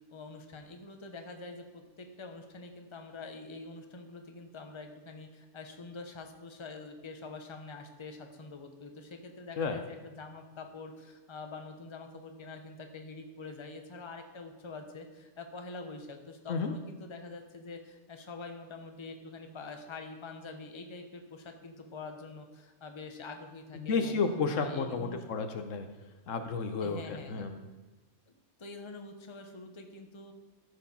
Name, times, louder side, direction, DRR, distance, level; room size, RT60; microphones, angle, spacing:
voice 1, 0.1-24.2 24.5-25.2 26.8-27.5 28.3-30.3, left 3 dB, 25° left, 5 dB, 0.9 m, -45 dB
voice 2, 23.7-25.9 26.3-27.6, left 4 dB, 80° left, 7 dB, 1.2 m, -32 dB
14.0 x 4.8 x 5.4 m, 1.2 s
omnidirectional pair, 1.3 m